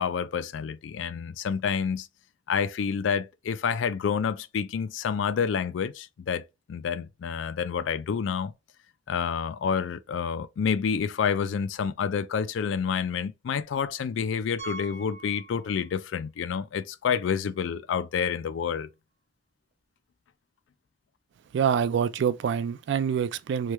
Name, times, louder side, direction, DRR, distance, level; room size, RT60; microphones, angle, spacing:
voice 1, 0.0-2.1 2.5-6.4 6.7-8.5 9.1-18.9, left 6 dB, 80° left, 0.3 m, -28 dB
Piano, 14.6-16.2 16.5-16.6 17.2-17.3 17.5-17.6 19.7-19.8, right 4 dB, 35° right, 1.2 m, -43 dB
voice 2, 21.5-23.7, right 7 dB, 70° right, 0.3 m, -26 dB
3.1 x 2.3 x 3.0 m
head